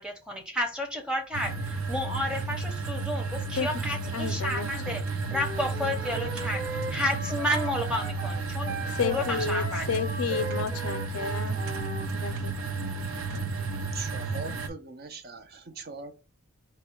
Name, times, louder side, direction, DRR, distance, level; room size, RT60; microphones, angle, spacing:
voice 1, 0.0-5.0 5.3-9.9, left 1 dB, 5° right, 0.7 m, -31 dB
sound 1, 1.3-14.7, right 3 dB, 90° right, 0.6 m, -32 dB
voice 2, 4.1-5.0 8.9-11.6 12.1-12.6, left 6 dB, 90° left, 0.5 m, -32 dB
Wind instrument woodwind instrument, 5.3-12.1, right 1 dB, 70° right, 1.0 m, -39 dB
voice 3, 13.9-16.1, right 4 dB, 45° right, 0.5 m, -40 dB
4.4 x 2.1 x 4.4 m
head